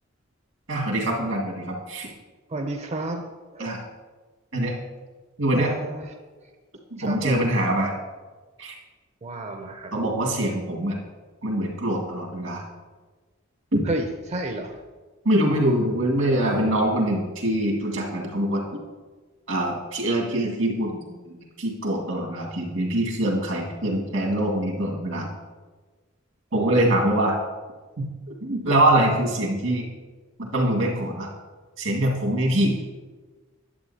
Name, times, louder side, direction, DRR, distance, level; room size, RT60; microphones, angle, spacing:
voice 1, 0.7-2.1 3.6-3.8 4.5-4.7 5.4-5.7 6.9-7.9 8.6-8.7 9.9-11.0 11.4-12.6 13.7-13.8 15.2-18.6 19.5-25.3 26.5-27.4 28.0-28.1 28.4-29.9 30.4-31.3 31.8-32.8, right 1 dB, 85° right, -2 dB, 2.1 m, -24 dB
voice 2, 2.5-3.2 3.5-3.8 5.5-6.1 7.0-7.5 9.2-9.9 13.9-14.8 26.5-26.8, right 2 dB, 35° right, 5 dB, 0.5 m, -31 dB
11.0 x 7.8 x 2.8 m, 1.3 s
head